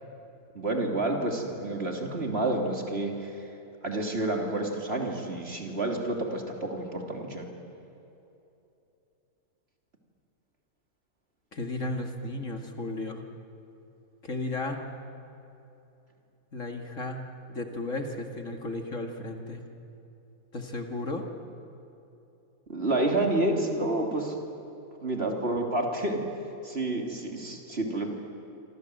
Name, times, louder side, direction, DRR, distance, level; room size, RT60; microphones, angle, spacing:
voice 1, 0.5-3.5 3.8-7.5 22.7-24.4 25.0-26.2 26.6-28.1, right 2 dB, 40° right, 1 dB, 3.3 m, -29 dB
voice 2, 11.5-13.2 14.2-14.8 16.5-17.2 17.5-19.6 20.5-21.2, left 2 dB, 55° left, 3 dB, 2.4 m, -34 dB
26.5 x 26.5 x 7.9 m, 2.8 s
omnidirectional pair, 1.6 m